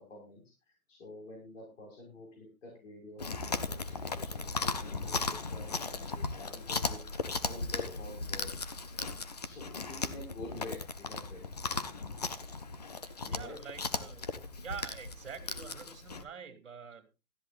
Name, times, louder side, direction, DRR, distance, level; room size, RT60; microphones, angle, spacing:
voice 1, 0.0-8.5 9.2-11.4 13.2-13.6, left 2 dB, 55° left, -1 dB, 5.1 m, -48 dB
Chewing mastication, 3.2-16.2, left 4 dB, 30° left, 0.6 m, -37 dB
voice 2, 13.0-17.1, right 7 dB, 55° right, 8 dB, 2.6 m, -46 dB
18.0 x 13.5 x 2.5 m, 0.28 s
hypercardioid pair, 170°, 43 cm